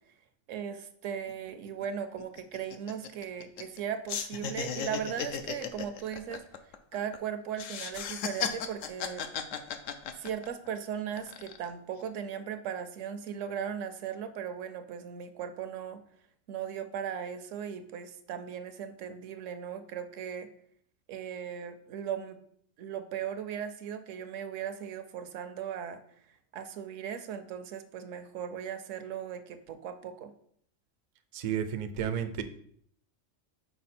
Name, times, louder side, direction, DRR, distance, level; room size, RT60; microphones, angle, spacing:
voice 1, 0.5-6.5 6.9-9.3 10.1-16.0 16.5-20.5 21.1-22.4 22.8-26.0 26.5-30.3, right 8 dB, 75° right, 10 dB, 1.0 m, -38 dB
sound 1, 1.3-1.4 1.7-1.9 2.2-3.8 4.1-7.2 7.5-10.7 11.1-11.7, left 7 dB, 75° left, 1.0 m, -36 dB
voice 2, 31.3-32.4, right 8 dB, 60° right, 9 dB, 0.4 m, -32 dB
5.8 x 4.5 x 4.2 m, 0.65 s
omnidirectional pair, 1.3 m